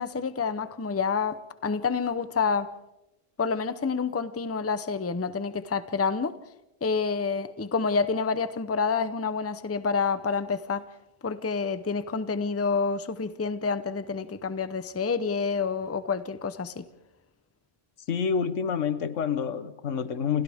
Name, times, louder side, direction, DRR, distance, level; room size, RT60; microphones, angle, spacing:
voice 1, 0.0-2.7 3.4-6.3 6.8-10.8 11.2-16.8, left 5 dB, 15° left, 0.6 m, -28 dB
voice 2, 18.1-20.4, left 6 dB, 85° left, 1.4 m, -28 dB
29.5 x 28.5 x 3.6 m
omnidirectional pair, 1.3 m